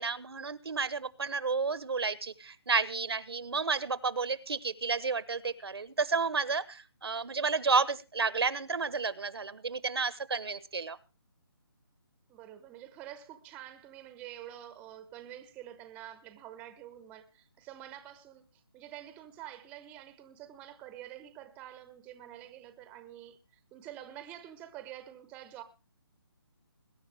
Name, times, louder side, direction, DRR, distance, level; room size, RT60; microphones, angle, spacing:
voice 1, 0.0-11.0, right 4 dB, 80° right, 1.3 m, -31 dB
voice 2, 12.3-25.6, right 12 dB, 10° right, 0.8 m, -48 dB
21.5 x 10.5 x 3.5 m
hypercardioid pair, 160°, 13 cm